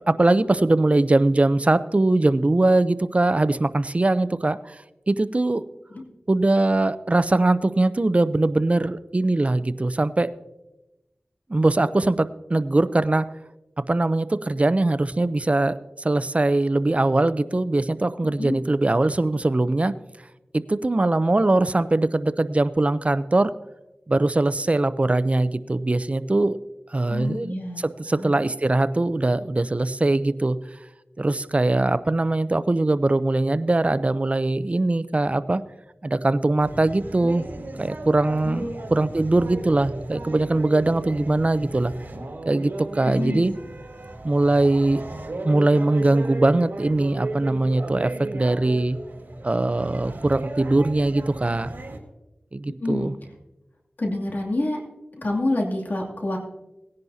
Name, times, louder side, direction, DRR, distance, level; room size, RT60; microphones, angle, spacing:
voice 1, 0.1-4.8 5.1-5.6 6.3-10.3 11.5-13.3 13.9-19.9 20.7-23.5 24.1-26.6 26.9-30.6 31.2-35.6 36.0-37.5 37.8-41.9 42.5-43.5 44.2-45.0 45.4-49.0 49.4-51.7 52.5-53.1, right 2 dB, 40° right, 15 dB, 0.5 m, -21 dB
voice 2, 27.1-27.8 28.1-28.4 38.4-38.7 43.1-43.5 52.8-53.1 54.0-54.8 55.2-56.4, left 2 dB, 60° left, -1 dB, 2.6 m, -27 dB
sound 1, 36.6-52.0, right 2 dB, 65° right, 1.9 m, -35 dB
18.5 x 10.5 x 2.7 m, 0.99 s
cardioid pair, 40°, 4 cm